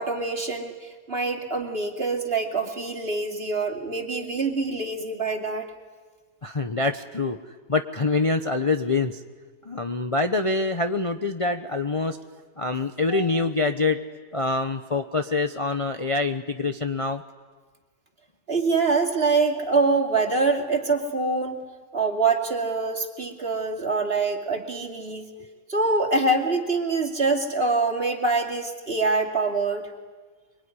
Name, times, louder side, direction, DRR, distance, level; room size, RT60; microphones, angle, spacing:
voice 1, 0.0-5.7 18.5-21.6 21.9-25.3 25.7-29.9, right 3 dB, 40° right, 1 dB, 2.8 m, -25 dB
voice 2, 6.4-7.4 7.7-9.2 9.6-12.2 12.6-14.0 14.3-17.2, left 3 dB, 25° left, 6 dB, 0.8 m, -25 dB
25.0 x 24.0 x 9.8 m, 1.4 s
omnidirectional pair, 1.5 m